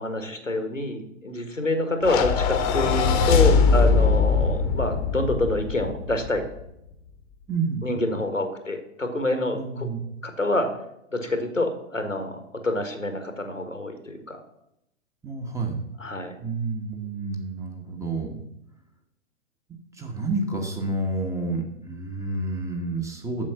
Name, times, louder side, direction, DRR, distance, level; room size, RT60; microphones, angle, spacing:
voice 1, 0.0-6.5 7.8-9.9 10.2-10.8 11.1-14.4 16.0-16.4, left 1 dB, 90° left, 7 dB, 1.6 m, -27 dB
sound 1, 2.0-6.5, left 5 dB, 30° left, 1.1 m, -21 dB
voice 2, 7.5-7.9 9.5-10.0 15.2-15.8 16.4-18.4 19.9-23.5, right 3 dB, 10° right, 2 dB, 1.2 m, -29 dB
7.5 x 7.1 x 5.7 m, 0.79 s
figure-of-eight pair, 110°, 37 cm